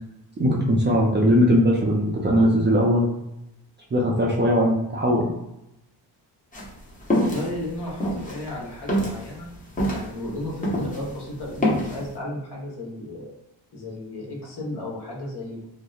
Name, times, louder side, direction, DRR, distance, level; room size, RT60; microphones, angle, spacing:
voice 1, 0.4-3.0 3.9-5.3, equal, 25° right, -2 dB, 0.4 m, -19 dB
sound 1, 6.5-11.1 11.4-12.0, equal, 20° left, 0.7 m, -25 dB
voice 2, 7.1-9.5 9.9-13.3 13.7-15.6, left 1 dB, 60° left, -4 dB, 1.1 m, -34 dB
2.7 x 2.0 x 2.3 m, 0.86 s
cardioid pair, 75°, 45 cm